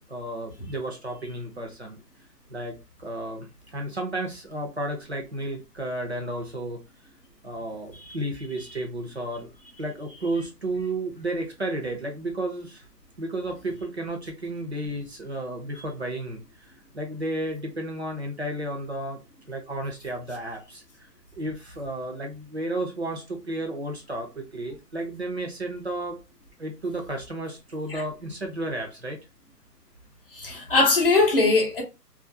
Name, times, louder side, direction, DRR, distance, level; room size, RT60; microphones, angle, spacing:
voice 1, 0.1-2.0 2.5-6.8 7.4-9.5 9.8-12.8 13.2-19.2 19.5-21.1 21.3-26.2 26.6-29.2, right 1 dB, 45° right, 0.6 m, -32 dB
voice 2, 30.3-31.8, left 3 dB, 35° left, 0.6 m, -21 dB
2.4 x 2.4 x 2.5 m
hypercardioid pair, 175°, 49 cm